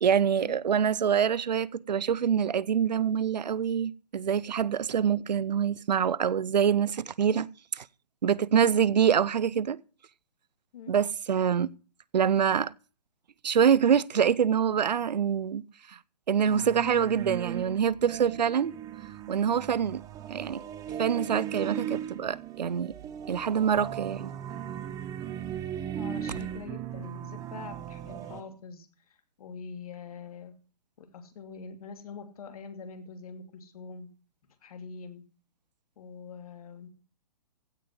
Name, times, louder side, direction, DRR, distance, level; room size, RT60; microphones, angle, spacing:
voice 1, 0.0-7.5 7.7-7.8 8.2-9.8 10.9-11.7 12.1-12.7 13.4-15.6 15.9-16.0 16.3-18.8 19.3-20.0 20.3-20.6 21.0-22.9 23.3-24.3, right 8 dB, 90° right, 0.6 m, -25 dB
sound 1, 16.5-28.4, right 10 dB, 15° right, 0.9 m, -38 dB
voice 2, 25.9-30.5 31.0-34.1 34.6-35.2 36.0-36.9, left 5 dB, 60° left, 2.6 m, -44 dB
16.0 x 5.3 x 7.7 m
hypercardioid pair, 145°, 21 cm